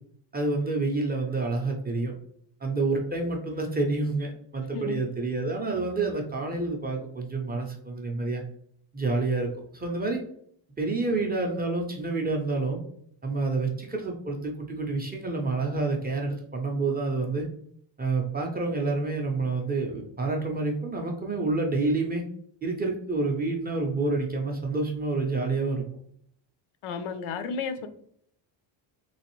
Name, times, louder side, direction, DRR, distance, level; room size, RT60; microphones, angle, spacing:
voice 1, 0.3-2.1 2.6-8.4 8.9-10.2 10.8-12.8 13.2-17.5 18.0-22.2 22.6-25.8, right 3 dB, 20° right, 0.4 m, -28 dB
voice 2, 26.8-27.9, left 5 dB, 90° left, 0.6 m, -32 dB
3.2 x 3.1 x 3.0 m
cardioid pair, 170°, 48 cm